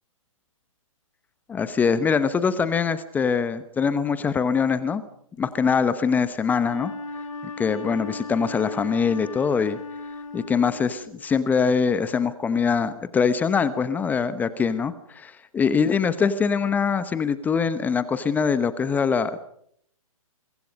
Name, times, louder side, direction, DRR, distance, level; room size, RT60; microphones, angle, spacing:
voice 1, 1.5-5.0 5.4-6.9 7.6-9.8 10.3-19.4, left 6 dB, 10° left, 14 dB, 0.9 m, -23 dB
Wind instrument woodwind instrument, 6.5-11.3, left 3 dB, 65° left, 4.7 m, -37 dB
27.0 x 24.0 x 5.3 m, 0.66 s
figure-of-eight pair, 130°, 18 cm